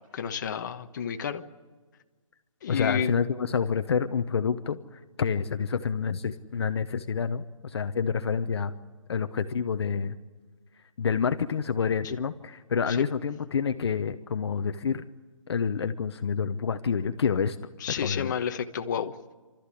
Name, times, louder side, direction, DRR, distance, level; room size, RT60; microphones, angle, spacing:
voice 1, 0.1-1.4 2.6-3.1 12.9-13.0 17.8-19.1, left 7 dB, 35° left, 6 dB, 1.2 m, -30 dB
voice 2, 2.7-8.7 9.1-10.2 11.0-15.0 15.5-17.6 18.0-18.3, left 6 dB, 50° left, 9 dB, 1.0 m, -28 dB
29.0 x 13.5 x 10.0 m, 1.4 s
hypercardioid pair, 165°, 17 cm